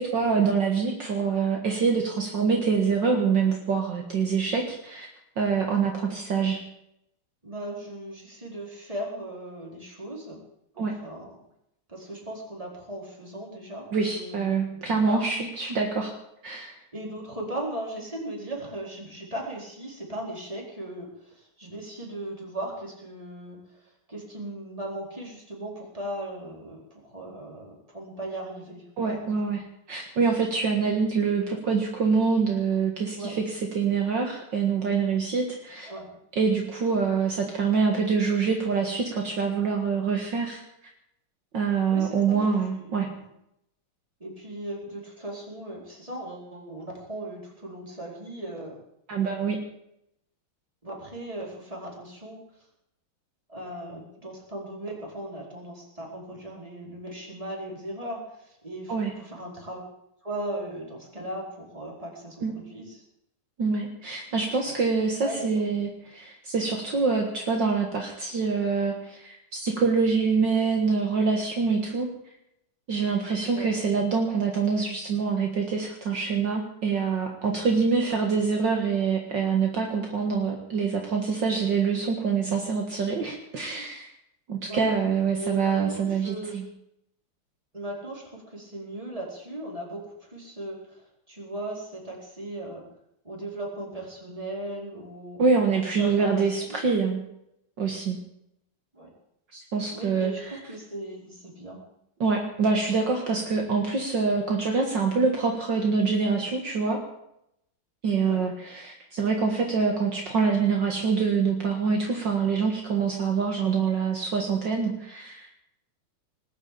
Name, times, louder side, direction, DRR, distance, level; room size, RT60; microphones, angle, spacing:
voice 1, 0.0-5.1 5.4-6.6 10.8-10.9 13.9-16.1 16.4-16.7 29.0-29.6 29.9-33.4 33.8-35.9 36.4-40.6 41.5-43.1 49.1-49.6 58.9-59.1 62.4-62.5 63.6-72.1 72.9-84.1 84.5-86.6 95.4-97.2 97.8-98.2 99.5-100.3 102.2-107.0 108.0-115.6, right 5 dB, 60° right, 2 dB, 2.4 m, -25 dB
voice 2, 7.4-10.4 10.7-11.4 11.9-15.2 16.9-23.8 24.1-29.4 33.2-33.4 35.9-36.2 41.9-43.3 44.2-48.8 50.8-52.4 53.5-59.8 60.2-63.0 64.7-64.8 65.2-65.8 73.5-73.7 78.0-78.1 84.7-84.8 85.4-86.6 87.7-92.8 93.2-95.4 95.9-96.8 98.9-99.1 99.9-100.4 100.7-101.8 103.5-103.6 108.2-108.4, right 1 dB, 15° right, -2 dB, 4.5 m, -38 dB
20.0 x 8.2 x 8.6 m, 0.78 s
omnidirectional pair, 2.3 m